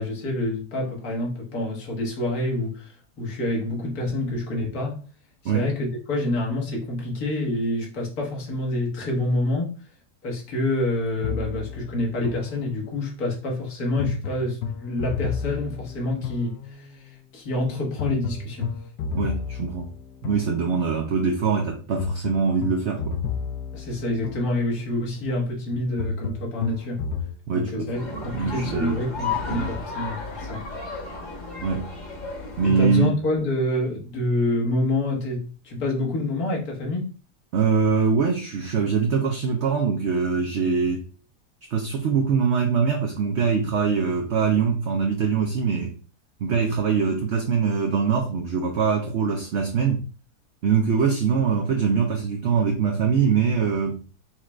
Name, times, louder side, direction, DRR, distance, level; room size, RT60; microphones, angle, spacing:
voice 1, 0.0-5.0 5.4-9.8 10.2-18.7 23.7-27.0 27.5-30.6 32.6-37.1, left 1 dB, 65° left, 1.8 m, -27 dB
sound 1, 11.2-13.1 14.0-17.0 18.0-21.1 22.0-25.0 26.0-27.4, left 5 dB, 85° left, 1.2 m, -32 dB
voice 2, 19.1-19.9 20.2-23.2 27.5-29.0 29.5-29.7 31.6-31.9 32.6-33.1 37.5-41.0 41.7-45.9 46.4-50.0 50.6-54.0, right 6 dB, 60° right, 0.7 m, -23 dB
sound 2, 27.9-33.0, left 4 dB, 30° left, 1.1 m, -33 dB
5.8 x 2.4 x 3.1 m
omnidirectional pair, 1.8 m